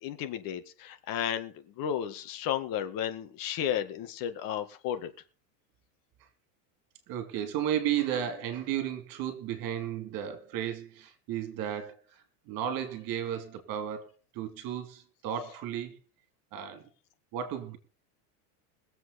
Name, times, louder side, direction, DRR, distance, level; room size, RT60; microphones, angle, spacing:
voice 1, 0.0-5.1, left 9 dB, 45° left, 1.8 m, -33 dB
voice 2, 7.1-16.0 16.5-16.9 17.3-17.8, right 10 dB, 45° right, 3.1 m, -34 dB
21.5 x 7.9 x 4.2 m
supercardioid pair, 135°, 47 cm